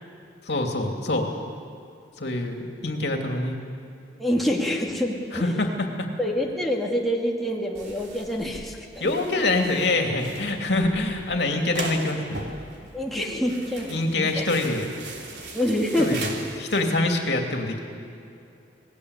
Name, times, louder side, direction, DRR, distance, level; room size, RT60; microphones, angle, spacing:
voice 1, 0.5-1.3 2.2-3.6 5.3-6.1 9.0-12.5 13.9-14.9 16.0-17.8, left 2 dB, 70° left, 2 dB, 2.8 m, -25 dB
voice 2, 4.2-5.5 6.2-9.1 12.9-14.4 15.5-16.2, equal, ahead, -2 dB, 2.5 m, -26 dB
sound 1, 7.7-17.0, right 2 dB, 70° right, 3.2 m, -39 dB
27.0 x 19.5 x 8.3 m, 2.6 s
head